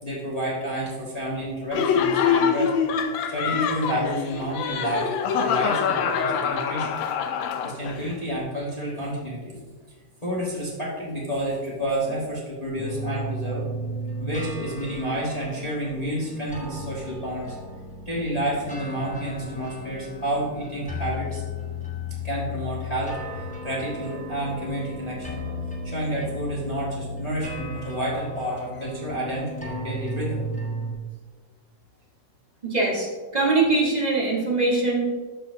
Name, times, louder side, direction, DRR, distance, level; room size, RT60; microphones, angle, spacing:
voice 1, 0.0-2.7 3.3-6.9 7.6-9.6 10.2-13.6 14.2-17.6 18.0-21.4 22.2-25.4 25.8-30.4, right 1 dB, 20° left, -6 dB, 1.3 m, -30 dB
Laughter, 1.7-8.1, left 7 dB, 85° left, 1.4 m, -25 dB
sound 1, 12.8-30.9, left 1 dB, 5° left, 0.6 m, -35 dB
voice 2, 32.6-35.0, right 3 dB, 25° right, -4 dB, 1.2 m, -22 dB
12.5 x 4.3 x 2.7 m, 1.4 s
omnidirectional pair, 2.0 m